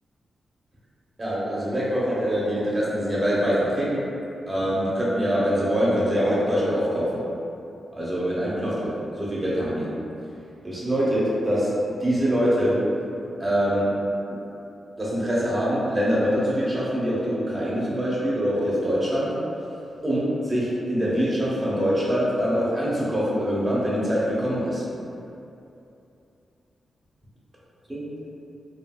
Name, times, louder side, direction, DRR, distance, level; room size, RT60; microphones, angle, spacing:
voice 1, 1.2-4.0 4.5-7.2 7.9-9.9 10.6-11.7 12.0-12.8 13.4-13.9 15.0-19.3 20.0-24.8 27.9-28.0, equal, 25° right, -8 dB, 0.9 m, -24 dB
3.2 x 2.5 x 2.2 m, 2.8 s
cardioid pair, 70°, 0 cm